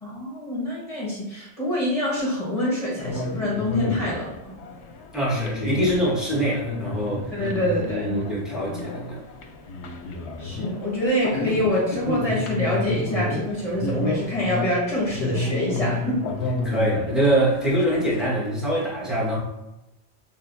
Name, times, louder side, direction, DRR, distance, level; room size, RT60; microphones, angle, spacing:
voice 1, 0.0-4.3 7.3-8.2 10.4-16.2, left 1 dB, 30° left, -5 dB, 1.4 m, -26 dB
sound 1, 3.0-18.3, left 2 dB, 75° left, 0.9 m, -31 dB
voice 2, 5.1-7.6 7.9-9.2 16.6-19.4, right 1 dB, ahead, -7 dB, 1.3 m, -24 dB
6.6 x 2.8 x 2.6 m, 0.94 s
omnidirectional pair, 1.1 m